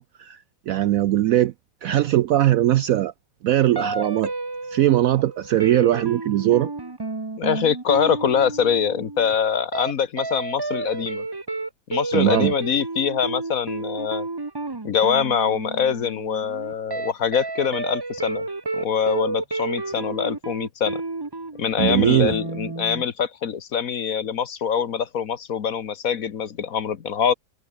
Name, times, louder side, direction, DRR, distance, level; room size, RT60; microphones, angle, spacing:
voice 1, 0.0-1.5 1.8-3.1 3.4-4.3 4.7-6.7 12.1-12.5 21.8-22.3, right 13 dB, 70° right, 0.8 m, -20 dB
sound 1, 3.8-9.3 9.7-9.9 10.2-23.0, right 3 dB, 20° right, 0.8 m, -31 dB
voice 2, 7.4-11.2 11.9-14.3 14.8-18.5 18.7-21.0 21.6-27.3, left 7 dB, 55° left, 1.5 m, -24 dB
omnidirectional pair, 1.9 m